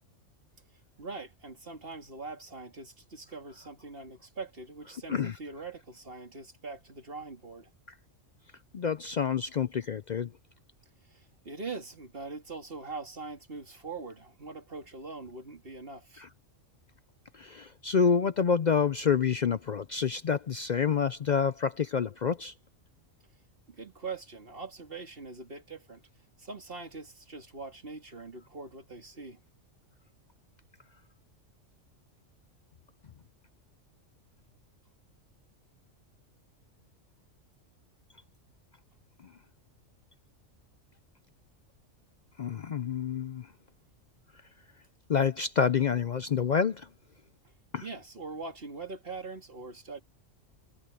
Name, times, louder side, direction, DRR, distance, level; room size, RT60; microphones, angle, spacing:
voice 1, 1.0-7.7 11.1-16.3 23.7-26.0 26.4-29.4 47.8-50.0, right 3 dB, 45° right, 2.8 m, -42 dB
voice 2, 8.7-10.3 16.2-16.3 17.3-22.5 42.4-43.5 45.1-46.9 47.7-47.8, left 6 dB, 55° left, 0.5 m, -28 dB
omnidirectional pair, 1.3 m